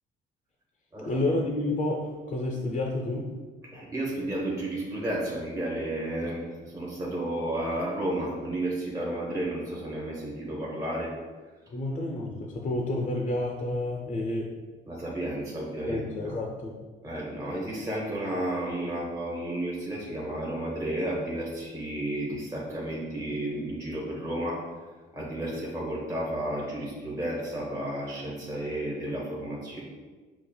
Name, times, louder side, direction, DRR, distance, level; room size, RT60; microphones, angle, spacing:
voice 1, 1.0-3.3 11.7-14.5 15.8-16.7, left 2 dB, 40° left, -1 dB, 0.5 m, -30 dB
voice 2, 3.7-11.1 14.8-16.4 17.0-24.6 25.1-29.8, right 1 dB, 15° right, -5 dB, 0.8 m, -32 dB
5.5 x 2.4 x 2.2 m, 1.4 s
cardioid pair, 90°, 20 cm